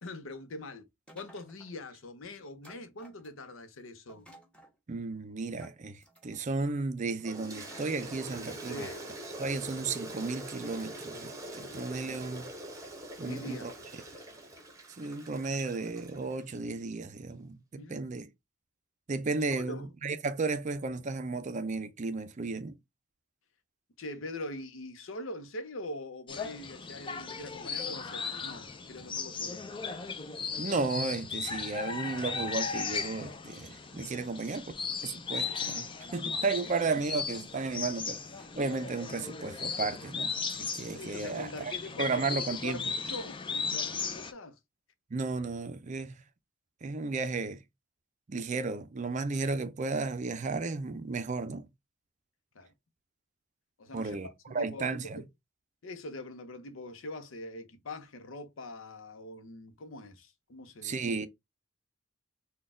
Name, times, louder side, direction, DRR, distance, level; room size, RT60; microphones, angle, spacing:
voice 1, 0.0-0.9 1.1-4.3 8.7-9.0 11.6-11.8 13.2-13.7 17.8-18.1 19.5-19.9 24.0-29.7 36.0-36.4 40.9-42.2 42.6-44.6 52.5-52.7 53.8-55.3 55.8-61.1, left 1 dB, 80° left, 0.7 m, -43 dB
sound 1, 1.1-1.9 2.6-3.6 4.1-4.8 5.6-6.5 7.2-7.3 7.7-8.5 9.2-9.9, equal, 5° left, 1.1 m, -56 dB
voice 2, 4.9-8.9 9.4-12.5 13.2-13.7 15.0-18.3 19.1-22.8 30.6-34.7 35.0-38.2 38.6-40.3 40.6-42.8 45.1-46.2 46.8-47.6 48.3-51.7 53.9-55.2 60.8-61.3, right 3 dB, 35° right, 0.5 m, -34 dB
Toilet flush, 7.2-16.6, right 1 dB, 15° right, 1.0 m, -44 dB
sound 2, 26.3-44.3, left 5 dB, 25° left, 0.5 m, -37 dB
4.0 x 2.3 x 3.6 m
head